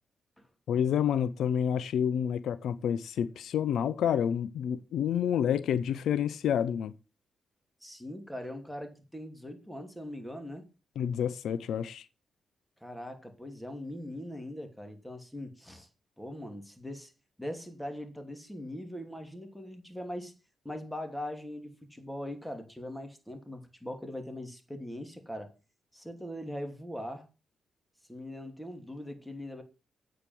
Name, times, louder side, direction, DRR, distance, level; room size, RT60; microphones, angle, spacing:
voice 1, 0.7-6.9 11.0-12.0, left 9 dB, 85° left, 0.6 m, -29 dB
voice 2, 7.8-10.7 12.8-15.9 16.2-17.1 17.4-20.3 20.6-25.5 25.9-27.3 28.1-29.6, left 1 dB, 5° left, 2.7 m, -41 dB
8.4 x 5.0 x 7.5 m
cardioid pair, 60°, 0 cm